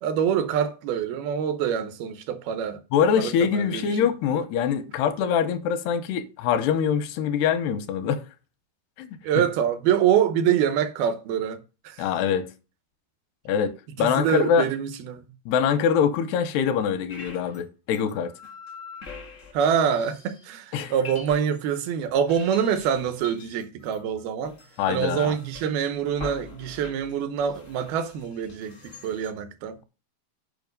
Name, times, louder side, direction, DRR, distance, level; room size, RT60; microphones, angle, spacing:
voice 1, 0.0-2.8 3.2-3.9 9.2-11.6 11.8-12.1 14.0-15.3 19.5-24.6 24.9-29.8, right 8 dB, 75° right, 2.6 m, -25 dB
voice 2, 2.9-8.2 9.0-9.1 12.0-12.5 13.5-14.7 15.5-18.3 20.7-20.9 24.8-25.4, left 7 dB, 85° left, 3.0 m, -24 dB
sound 1, 17.1-17.6 17.9-20.5 20.8-21.8 22.1-29.3, left 4 dB, 55° left, 0.8 m, -44 dB
8.3 x 5.6 x 5.2 m
omnidirectional pair, 4.7 m